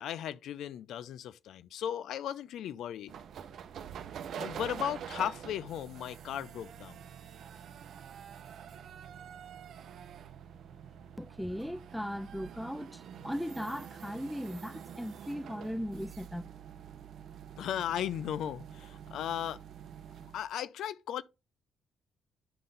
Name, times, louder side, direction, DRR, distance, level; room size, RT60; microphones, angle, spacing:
voice 1, 0.0-3.2 4.4-7.0 17.6-19.6 20.3-21.2, left 10 dB, 75° left, 0.4 m, -36 dB
sound 1, 3.1-20.4, right 8 dB, 70° right, 0.7 m, -46 dB
voice 2, 11.2-16.5, equal, ahead, 0.3 m, -38 dB
10.0 x 3.8 x 3.9 m
cardioid pair, 90°, 0 cm